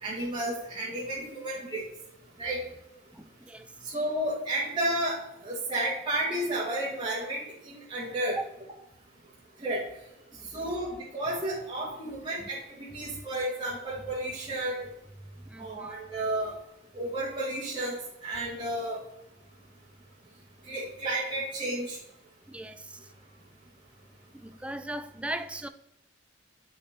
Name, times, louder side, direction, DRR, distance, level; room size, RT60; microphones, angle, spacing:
voice 1, 0.0-1.8 2.4-2.6 3.8-8.4 9.6-9.8 10.5-14.9 15.6-16.5 16.9-19.0 20.7-22.0, right 1 dB, 25° right, 1.9 m, -32 dB
voice 2, 3.1-3.7 8.4-8.5 12.4-12.5 13.1-13.3 15.5-15.9 22.5-22.9 24.4-25.7, right 1 dB, 5° right, 0.4 m, -38 dB
8.3 x 5.4 x 4.2 m
head